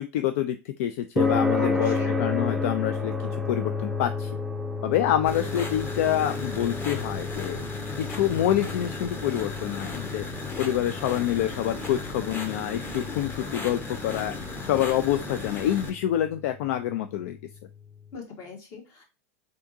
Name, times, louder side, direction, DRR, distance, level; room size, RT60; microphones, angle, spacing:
voice 1, 0.0-3.1 3.5-4.3 4.8-7.6 8.0-10.2 10.6-14.3 14.6-17.4, left 12 dB, 65° left, 9 dB, 0.4 m, -27 dB
sound 1, 1.2-17.7, left 3 dB, 5° right, 0.5 m, -32 dB
voice 2, 1.6-2.1 18.1-19.0, left 4 dB, 40° left, 2 dB, 1.7 m, -41 dB
sound 2, 5.3-15.9, left 3 dB, 25° left, 1.2 m, -36 dB
3.8 x 3.5 x 2.6 m, 0.29 s
hypercardioid pair, 120°, 8 cm